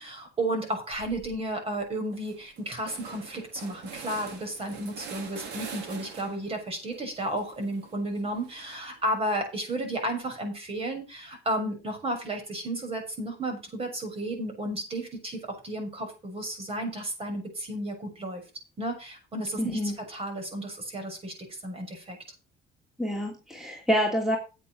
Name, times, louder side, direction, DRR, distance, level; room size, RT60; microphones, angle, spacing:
voice 1, 0.0-15.4 15.6-18.4 18.8-21.3 21.6-22.2, right 1 dB, 35° right, 4 dB, 6.5 m, -33 dB
sound 1, 0.9-1.4 1.8-1.9 2.1-6.5 6.9-9.0, right 5 dB, 85° right, 3.4 m, -44 dB
voice 2, 19.6-19.9 23.0-24.4, equal, 5° right, 1 dB, 2.9 m, -27 dB
9.0 x 8.7 x 6.2 m, 0.30 s
cardioid pair, 110°, 17 cm